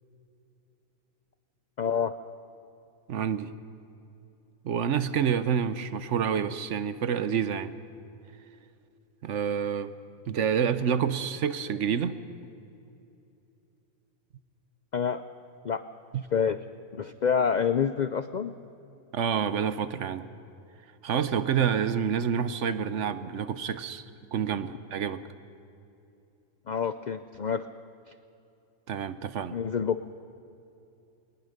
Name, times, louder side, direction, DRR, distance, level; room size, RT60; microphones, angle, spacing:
voice 1, 1.8-2.1 14.9-15.2 15.6-15.8 16.3-16.6 16.9-18.5 26.7-27.7 29.5-30.0, left 7 dB, 70° left, 11 dB, 0.4 m, -27 dB
voice 2, 3.1-3.5 4.6-7.7 9.2-9.9 10.3-12.2 16.1-16.2 19.1-20.3 21.0-24.0 24.3-25.2 28.9-29.6, right 7 dB, 60° right, 13 dB, 1.0 m, -28 dB
21.0 x 20.0 x 6.6 m, 2.7 s
omnidirectional pair, 1.5 m